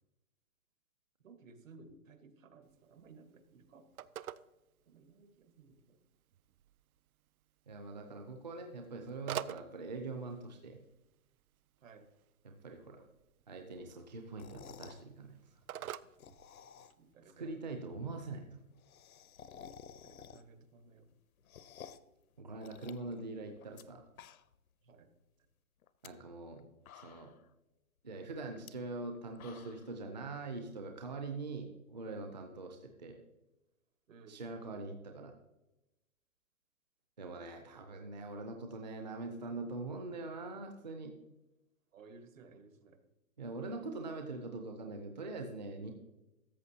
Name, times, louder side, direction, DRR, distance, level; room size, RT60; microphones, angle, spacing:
voice 1, 1.2-3.8 4.9-6.0 11.8-12.1 17.0-17.5 20.0-21.1 24.8-25.1 34.1-34.4 41.9-43.0, right 4 dB, 65° right, 9 dB, 1.3 m, -58 dB
Telephone, 2.6-17.1, right 11 dB, 80° right, 0.5 m, -50 dB
voice 2, 7.7-10.8 12.4-13.0 13.5-15.6 17.2-18.6 22.4-24.0 26.0-26.7 26.9-27.3 28.0-33.2 34.3-35.3 37.2-41.1 43.4-45.9, right 3 dB, 30° right, 4 dB, 0.5 m, -43 dB
sound 1, 14.3-15.0 16.0-17.1 17.5-17.6 17.8-17.9 18.1-18.2 18.5-20.7 21.0-22.1 22.6-23.8 24.1-24.7 25.0-25.1 25.8-26.1 26.6-26.7 26.9-27.5 28.5-28.7 29.1-29.9, left 8 dB, 75° left, 0.7 m, -53 dB
13.5 x 7.1 x 2.8 m, 0.98 s
hypercardioid pair, 175°, 43 cm